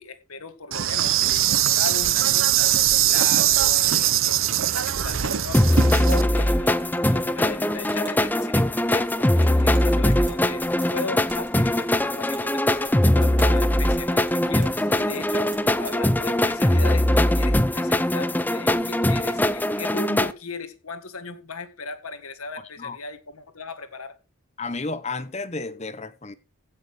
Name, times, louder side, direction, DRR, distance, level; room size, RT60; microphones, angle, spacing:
voice 1, 0.0-15.5 15.8-24.2, left 4 dB, 85° left, 1.9 m, -37 dB
Insect, 0.7-6.2, right 12 dB, 70° right, 0.8 m, -21 dB
sound 1, 5.5-20.3, left 1 dB, 10° left, 0.6 m, -21 dB
sound 2, 5.7-16.0, right 3 dB, 35° right, 7.5 m, -46 dB
voice 2, 24.6-26.3, left 3 dB, 30° left, 0.8 m, -32 dB
16.0 x 6.9 x 4.9 m
head